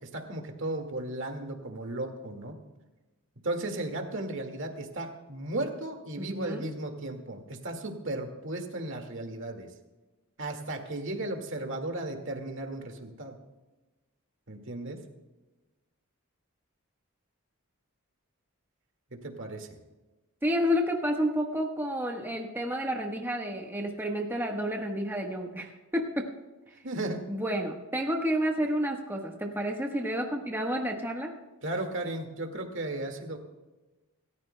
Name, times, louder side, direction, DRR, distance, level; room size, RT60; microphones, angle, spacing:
voice 1, 0.0-2.6 3.4-9.7 10.4-13.4 14.5-15.0 19.1-19.7 26.8-27.2 31.6-33.4, right 2 dB, 55° right, 4 dB, 1.9 m, -35 dB
voice 2, 6.2-6.7 20.4-26.3 27.3-31.3, equal, 10° right, 1 dB, 1.2 m, -30 dB
27.0 x 14.0 x 2.2 m, 1.1 s
head